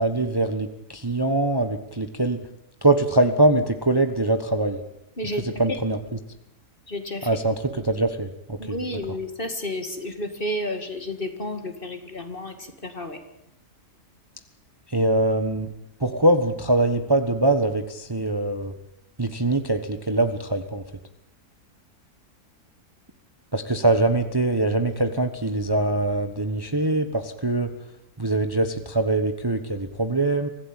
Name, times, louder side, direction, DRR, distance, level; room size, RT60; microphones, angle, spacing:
voice 1, 0.0-2.5 2.8-4.8 5.6-6.0 7.2-8.8 14.9-15.7 16.0-18.7 19.2-20.8 23.5-27.7 28.2-30.5, right 2 dB, 15° right, 8 dB, 1.2 m, -23 dB
voice 2, 5.2-5.8 6.9-7.3 8.6-13.2, left 1 dB, 35° left, 7 dB, 2.4 m, -31 dB
24.5 x 16.0 x 9.0 m, 0.80 s
omnidirectional pair, 1.6 m